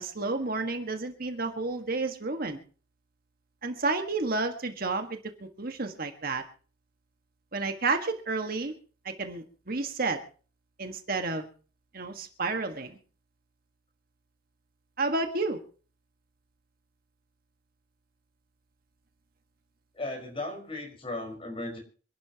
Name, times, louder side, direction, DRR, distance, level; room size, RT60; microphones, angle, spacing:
voice 1, 0.0-2.6 3.6-5.2 5.6-6.4 7.5-8.7 9.0-10.2 10.8-11.5 11.9-13.0 15.0-15.6, right 3 dB, 50° right, 6 dB, 1.7 m, -31 dB
voice 2, 19.9-21.8, left 2 dB, 30° left, 1 dB, 5.1 m, -36 dB
26.0 x 12.0 x 3.0 m, 0.39 s
head